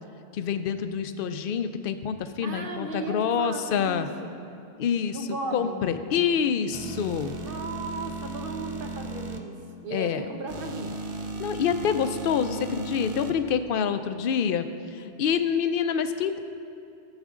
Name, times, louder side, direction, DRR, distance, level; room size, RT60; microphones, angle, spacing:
voice 1, 0.3-4.1 4.8-5.2 5.5-7.3 9.9-10.2 11.4-16.4, left 7 dB, 65° left, 10 dB, 0.7 m, -27 dB
voice 2, 2.4-4.4 5.1-5.8 7.4-10.9, right 3 dB, 60° right, 3 dB, 1.1 m, -36 dB
sound 1, 6.7-9.4 10.5-13.3, right 3 dB, 40° right, 0.5 m, -36 dB
14.0 x 7.3 x 3.7 m, 2.5 s
omnidirectional pair, 1.1 m